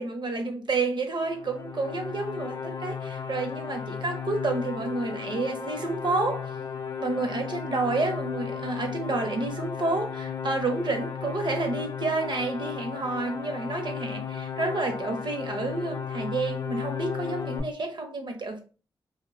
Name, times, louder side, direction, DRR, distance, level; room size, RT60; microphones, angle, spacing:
voice 1, 0.0-6.6 7.0-18.6, right 3 dB, 55° right, 0.6 m, -30 dB
sound 1, 1.3-17.6, left 7 dB, 45° left, 0.4 m, -35 dB
2.4 x 2.1 x 2.4 m
cardioid pair, 60°, 10 cm